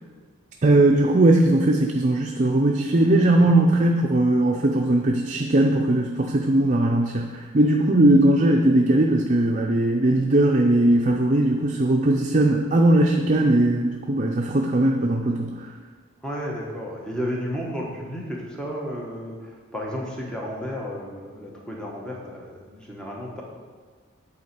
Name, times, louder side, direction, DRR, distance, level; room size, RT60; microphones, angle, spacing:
voice 1, 0.6-15.7, right 1 dB, 35° right, 1 dB, 0.5 m, -19 dB
voice 2, 16.2-23.4, equal, 5° left, -3 dB, 1.0 m, -32 dB
8.6 x 4.2 x 6.7 m, 1.5 s
head